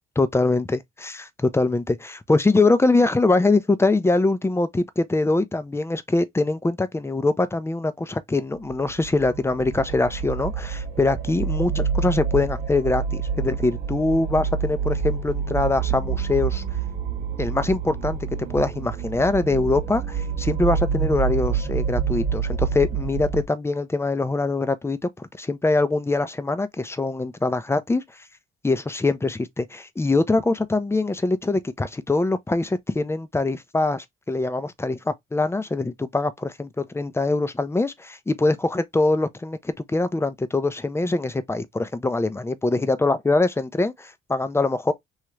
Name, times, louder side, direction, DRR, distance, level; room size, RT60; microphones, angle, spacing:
voice 1, 0.2-16.6 17.4-28.0 28.6-44.9, left 2 dB, 15° left, 0.4 m, -23 dB
sound 1, 8.6-23.4, right 6 dB, 55° right, 0.7 m, -27 dB
2.9 x 2.4 x 3.1 m
cardioid pair, 90°, 20 cm